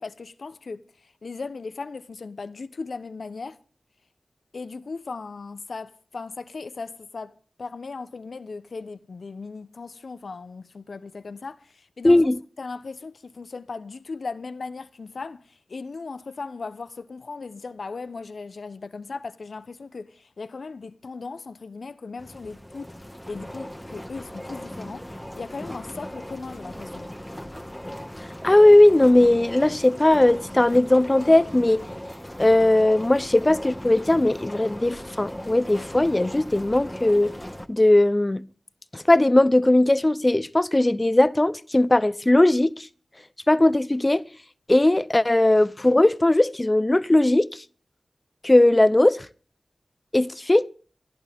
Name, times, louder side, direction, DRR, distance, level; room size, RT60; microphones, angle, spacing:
voice 1, 0.0-3.6 4.5-7.3 7.6-12.2 12.6-27.1, left 4 dB, 75° left, 1.0 m, -37 dB
voice 2, 12.0-12.4 28.4-31.9 32.4-37.3 37.7-38.4 38.9-42.9 43.5-44.2 44.7-47.5 48.4-49.3 50.1-50.7, left 1 dB, 25° left, 0.8 m, -18 dB
sound 1, 22.2-37.7, equal, 5° left, 1.6 m, -38 dB
26.5 x 11.0 x 3.6 m
cardioid pair, 50°, 0 cm